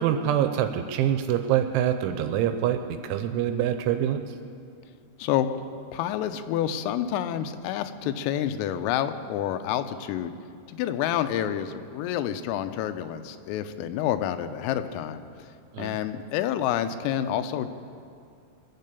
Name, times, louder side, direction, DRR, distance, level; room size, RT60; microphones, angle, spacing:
voice 1, 0.0-4.4 15.7-16.0, right 10 dB, 85° right, 8 dB, 2.9 m, -25 dB
voice 2, 5.9-10.3 10.7-15.2 15.8-17.7, left 10 dB, 90° left, 10 dB, 3.4 m, -28 dB
24.0 x 8.4 x 6.8 m, 2.4 s
omnidirectional pair, 5.8 m